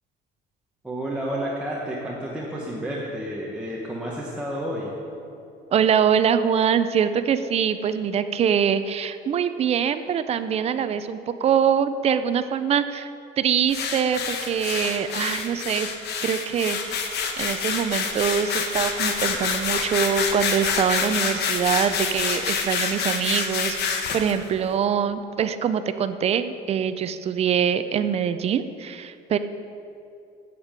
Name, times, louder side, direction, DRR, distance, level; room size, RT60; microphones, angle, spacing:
voice 1, 0.8-4.9, equal, 5° right, -5 dB, 1.0 m, -30 dB
voice 2, 5.7-13.1 13.4-15.9 16.2-29.4, right 8 dB, 35° right, 11 dB, 0.4 m, -24 dB
sound 1, 13.7-24.3, left 5 dB, 60° left, 1.1 m, -27 dB
8.3 x 7.4 x 7.3 m, 2.6 s
cardioid pair, 170°, 19 cm